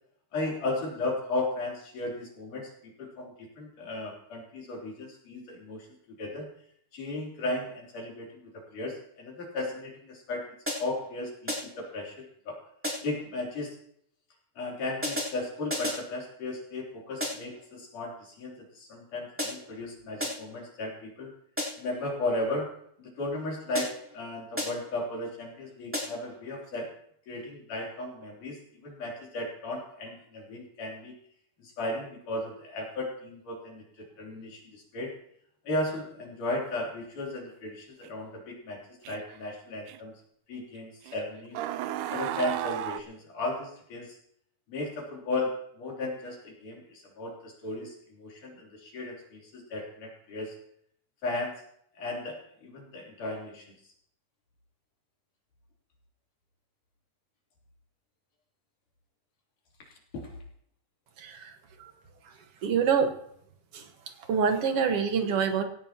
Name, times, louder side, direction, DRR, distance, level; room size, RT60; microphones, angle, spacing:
voice 1, 0.3-5.9 6.2-6.5 6.9-10.5 10.8-12.7 13.0-13.8 14.6-21.3 21.8-22.7 23.0-26.9 27.3-31.1 31.6-35.1 35.6-40.1 40.5-41.6 42.1-44.2 44.7-50.6 51.2-51.6 51.9-53.9 59.9-60.3, left 2 dB, 70° left, -2 dB, 4.8 m, -35 dB
sound 1, 10.7-11.1 11.5-11.9 12.8-13.3 15.0-16.1 17.2-17.6 19.4-19.8 20.2-20.6 21.6-22.0 23.7-24.2 24.6-25.0 25.9-26.4, left 1 dB, 5° right, 3.3 m, -35 dB
sound 2, 38.0-38.1 39.0-39.4 39.9-40.0 41.1-41.2 41.5-43.0, right 12 dB, 80° right, 2.0 m, -33 dB
voice 2, 61.2-61.9 62.6-63.2 63.7-63.9 64.2-65.6, right 6 dB, 55° right, 5 dB, 2.1 m, -26 dB
17.5 x 17.5 x 2.9 m, 0.68 s
omnidirectional pair, 3.8 m